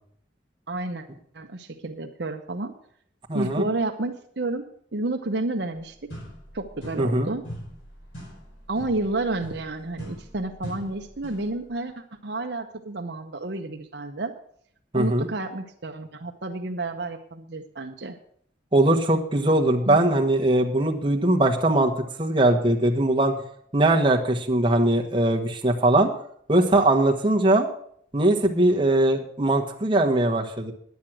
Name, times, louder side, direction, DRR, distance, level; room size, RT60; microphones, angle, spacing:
voice 1, 0.7-1.0 1.3-2.7 3.3-4.6 4.9-6.1 6.5-7.4 8.7-11.9 12.2-14.3 14.9-18.2 19.8-20.0, right 2 dB, 60° right, 4 dB, 0.8 m, -30 dB
voice 2, 3.3-3.7 7.0-7.3 14.9-15.3 18.7-21.9 22.2-23.3 23.7-26.1 26.5-27.7 28.1-30.7, right 1 dB, 25° right, 1 dB, 1.3 m, -21 dB
sound 1, 5.8-5.9 6.1-7.2 7.4-11.6, equal, 85° left, 4.5 m, -41 dB
10.5 x 9.4 x 6.2 m, 0.64 s
head